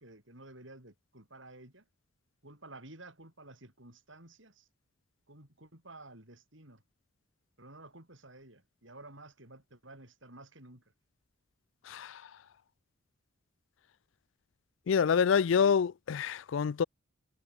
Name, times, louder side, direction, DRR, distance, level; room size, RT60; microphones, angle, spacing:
voice 1, 0.0-1.8 2.4-4.7 5.3-6.8 7.6-10.8, right 2 dB, 65° right, 7.7 m, -52 dB
voice 2, 11.9-12.2 14.9-16.8, left 6 dB, 65° left, 0.4 m, -27 dB
head